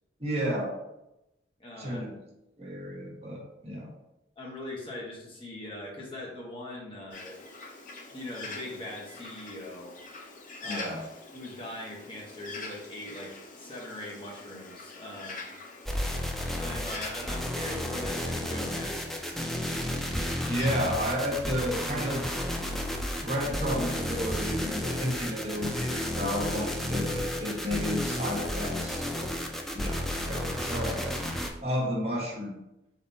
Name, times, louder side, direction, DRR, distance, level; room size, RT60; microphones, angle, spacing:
voice 1, 0.2-0.7 1.8-2.1 2.6-3.9 10.6-11.0 20.4-22.2 23.1-29.3 29.7-31.2 31.6-32.6, equal, 35° right, -2 dB, 1.1 m, -32 dB
voice 2, 1.6-2.1 4.4-7.4 8.1-10.0 10.6-11.0 11.3-15.4 16.6-19.3, left 1 dB, 30° left, -3 dB, 1.0 m, -41 dB
Bird, 7.1-20.7, left 3 dB, 45° left, 0.6 m, -45 dB
sound 1, 15.9-31.5, left 1 dB, ahead, 0.4 m, -32 dB
3.9 x 3.6 x 2.7 m, 0.90 s
head